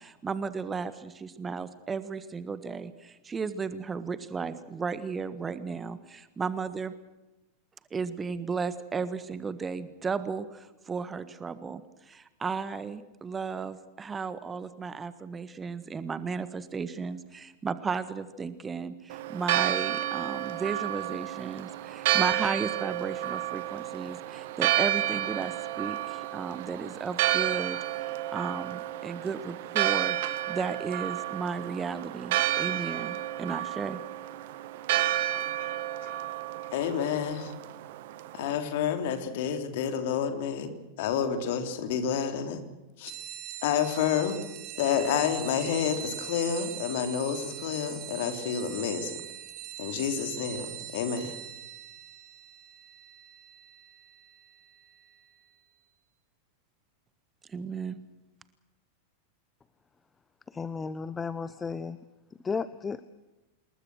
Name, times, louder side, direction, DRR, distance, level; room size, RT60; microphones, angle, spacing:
voice 1, 0.0-6.9 7.9-34.0 57.5-58.0, right 5 dB, 15° right, 13 dB, 1.5 m, -34 dB
Church bell, 19.1-38.5, right 14 dB, 50° right, 1.4 m, -31 dB
voice 2, 36.7-37.5 38.3-40.7 41.0-42.6 43.0-43.1 43.6-44.4 44.8-49.2 49.8-51.4, left 8 dB, 50° left, 7 dB, 3.5 m, -29 dB
sound 1, 43.1-55.2, right 12 dB, 35° right, 1.7 m, -42 dB
voice 3, 60.5-62.0 62.4-63.0, left 5 dB, 15° left, 16 dB, 0.9 m, -33 dB
27.5 x 21.0 x 6.3 m, 1.0 s
figure-of-eight pair, 90°, 0 cm